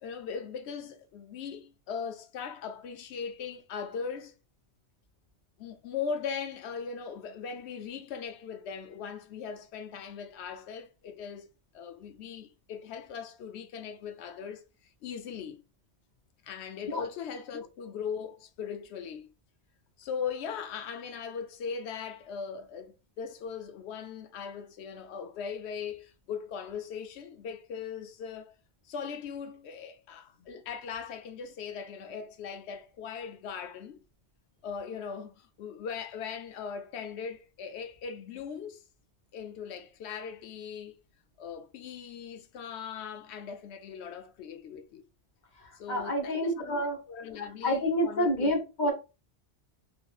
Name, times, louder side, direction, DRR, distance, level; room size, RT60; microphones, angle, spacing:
voice 1, 0.0-4.3 5.6-11.5 11.7-14.6 15.0-15.6 16.4-19.3 20.0-28.5 28.8-34.0 34.6-38.8 39.3-40.9 41.4-45.0 45.8-46.8 47.1-48.5, left 6 dB, 75° left, 0.9 m, -39 dB
voice 2, 45.6-47.0 47.6-48.9, equal, 45° left, 1.1 m, -28 dB
3.7 x 3.0 x 2.4 m
omnidirectional pair, 1.2 m